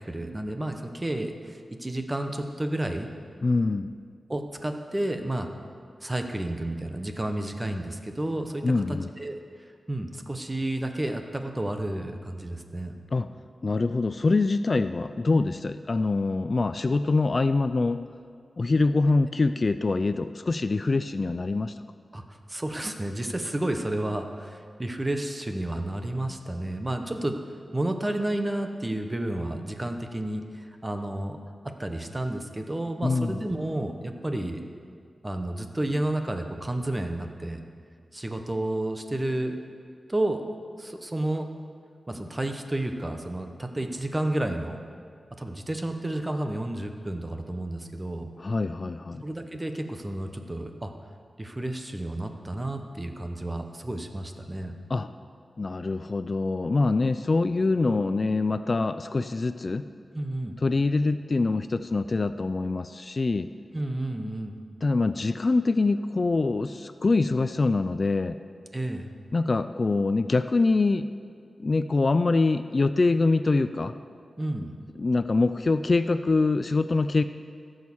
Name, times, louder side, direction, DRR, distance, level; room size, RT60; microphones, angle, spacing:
voice 1, 0.1-3.1 4.3-5.5 6.0-9.4 9.9-13.0 22.1-22.2 22.5-27.4 27.7-31.4 31.8-34.7 35.2-37.6 38.1-39.6 40.1-40.4 40.8-41.5 42.1-44.8 45.4-48.3 49.2-50.9 51.4-54.7 60.1-60.6 63.7-64.6 68.7-69.1 74.4-74.8, right 1 dB, 20° right, 5 dB, 1.0 m, -31 dB
voice 2, 3.4-3.9 8.6-9.1 13.1-13.3 13.6-18.0 18.6-21.7 33.0-33.3 48.4-49.2 54.9-55.1 55.6-59.9 60.6-63.5 64.8-68.4 69.3-71.0 71.6-73.9 75.0-77.2, left 3 dB, 45° left, 11 dB, 0.4 m, -24 dB
15.5 x 6.4 x 7.2 m, 2.2 s
wide cardioid pair, 85°, 0 cm